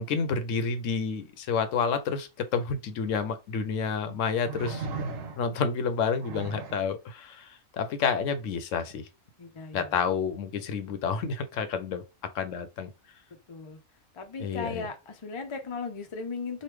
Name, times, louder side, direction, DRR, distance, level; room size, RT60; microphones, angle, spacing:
voice 1, 0.0-4.9 5.4-9.1 9.7-12.0 12.3-12.9 14.4-14.9, left 5 dB, 75° left, 0.9 m, -29 dB
sound 1, 3.1-3.2 4.4-5.6 6.2-6.9 8.8-8.9, right 3 dB, 80° right, 1.0 m, -36 dB
voice 2, 9.4-9.9 13.3-13.8 14.1-16.6, left 4 dB, 40° left, 0.4 m, -37 dB
3.1 x 2.4 x 3.1 m
omnidirectional pair, 1.4 m